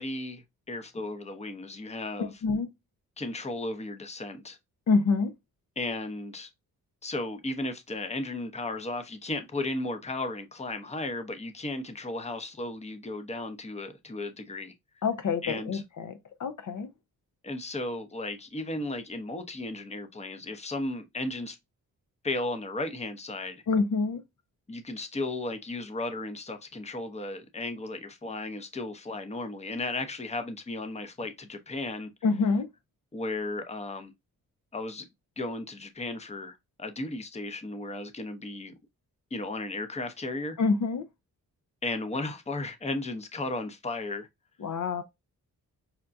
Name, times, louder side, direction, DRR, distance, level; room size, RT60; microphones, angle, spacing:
voice 1, 0.0-2.3 3.2-4.6 5.8-6.5 7.0-14.7 15.4-15.8 17.4-21.6 22.2-23.6 24.7-32.1 33.1-34.1 34.7-35.1 35.4-38.7 39.3-40.6 41.8-44.3, left 2 dB, 20° left, 0.7 m, -35 dB
voice 2, 2.2-2.7 4.9-5.3 15.0-16.9 23.7-24.2 32.2-32.7 40.6-41.1 44.6-45.0, left 4 dB, 50° left, 0.7 m, -27 dB
5.7 x 2.2 x 2.5 m
cardioid pair, 60°, 38 cm